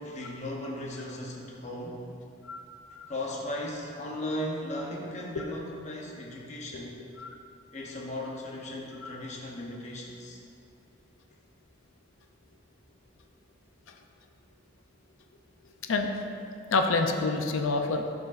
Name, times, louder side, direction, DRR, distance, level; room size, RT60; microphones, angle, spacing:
voice 1, 0.0-2.0 3.1-7.0 7.7-10.4, left 1 dB, 35° left, -2 dB, 0.8 m, -37 dB
voice 2, 16.7-18.0, left 3 dB, 80° left, 4 dB, 0.5 m, -27 dB
11.5 x 4.9 x 2.5 m, 2.6 s
head